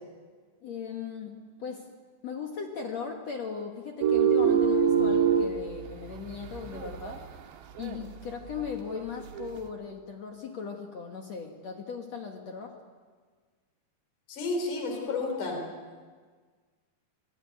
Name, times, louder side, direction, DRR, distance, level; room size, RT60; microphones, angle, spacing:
voice 1, 0.6-1.9 2.2-7.2 7.8-12.8, left 6 dB, 70° left, 3 dB, 1.6 m, -38 dB
sound 1, 4.0-7.4 7.8-8.0 8.6-9.6, right 7 dB, 70° right, 3.5 m, -26 dB
voice 2, 14.3-15.6, left 3 dB, 45° left, 3 dB, 5.4 m, -31 dB
25.0 x 19.0 x 9.3 m, 1.5 s
omnidirectional pair, 5.5 m